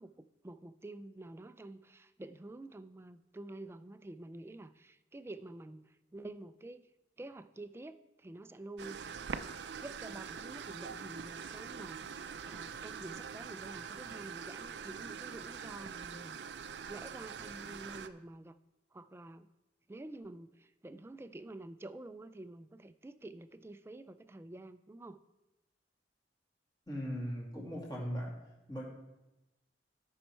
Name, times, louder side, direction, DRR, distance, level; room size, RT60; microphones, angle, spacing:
voice 1, 0.0-6.9 7.2-9.0 9.8-12.0 12.4-16.6 16.9-18.6 18.9-19.5 19.9-25.2, right 2 dB, 15° right, 11 dB, 0.3 m, -49 dB
sound 1, 8.8-18.1, right 6 dB, 75° right, 0.5 m, -44 dB
voice 2, 26.9-28.3 28.7-28.8, equal, 25° left, -3 dB, 2.1 m, -38 dB
13.5 x 5.6 x 4.4 m, 0.99 s
head